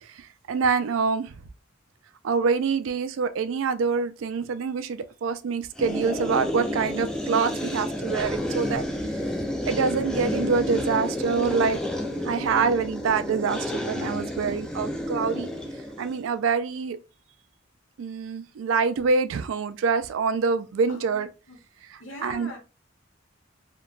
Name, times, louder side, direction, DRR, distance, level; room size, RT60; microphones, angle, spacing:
voice 1, 0.0-1.3 2.2-8.8 9.7-11.8 12.2-15.5 16.0-17.0 18.0-21.3 21.9-22.5, right 5 dB, 85° right, 0.3 m, -26 dB
sound 1, 5.8-16.2, left 1 dB, 5° left, 0.4 m, -30 dB
voice 2, 20.9-21.6 22.0-22.6, left 2 dB, 80° left, 0.9 m, -42 dB
2.8 x 2.2 x 2.4 m
head